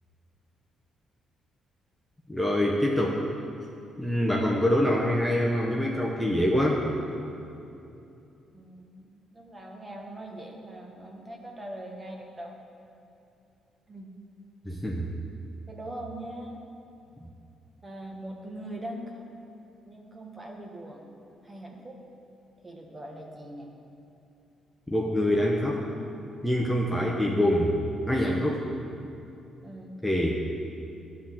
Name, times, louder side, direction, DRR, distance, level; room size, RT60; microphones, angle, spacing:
voice 1, 2.3-3.2 4.0-6.8 14.6-15.1 24.9-25.8 26.4-27.8 28.1-28.7 30.0-30.4, left 1 dB, 5° left, -3 dB, 0.9 m, -25 dB
voice 2, 8.5-12.6 13.9-14.1 15.7-16.6 17.8-19.2 19.8-21.1 21.4-22.0 22.6-23.7 29.6-30.0, right 1 dB, 20° right, 1 dB, 1.2 m, -41 dB
11.0 x 3.8 x 7.4 m, 2.8 s
cardioid pair, 90°, 0 cm